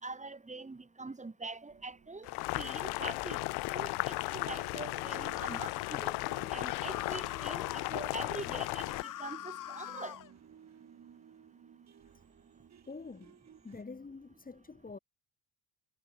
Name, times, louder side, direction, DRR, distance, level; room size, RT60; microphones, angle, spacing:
voice 1, 0.0-2.3 2.6-3.4 3.7-6.2 6.5-8.9 9.2-10.2, right 3 dB, 20° right, 5.5 m, -43 dB
sound 1, 1.7-3.6 4.2-13.8, right 8 dB, 45° right, 3.8 m, -57 dB
Boiling, 2.2-9.0, left 24 dB, 75° left, 0.9 m, -35 dB
sound 2, 5.1-5.9 6.6-7.9 8.8-10.3, left 12 dB, 55° left, 1.5 m, -44 dB
voice 2, 12.9-13.4 13.6-15.0, left 4 dB, 20° left, 4.1 m, -46 dB
supercardioid pair, 85°, 39 cm